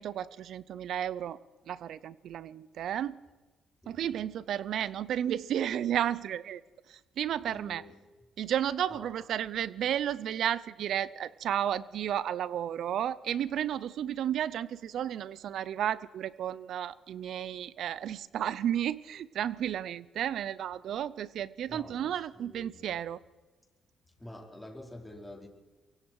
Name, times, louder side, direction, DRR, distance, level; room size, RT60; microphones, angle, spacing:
voice 1, 0.0-1.4 1.7-3.2 3.9-6.6 6.9-7.8 8.4-23.2, right 10 dB, 70° right, 19 dB, 0.6 m, -33 dB
voice 2, 3.8-4.2 7.5-8.0 8.9-9.1 21.7-22.9 24.2-25.5, left 1 dB, 5° left, 0 dB, 4.9 m, -48 dB
24.0 x 23.0 x 4.7 m, 1.2 s
cardioid pair, 90°, 0 cm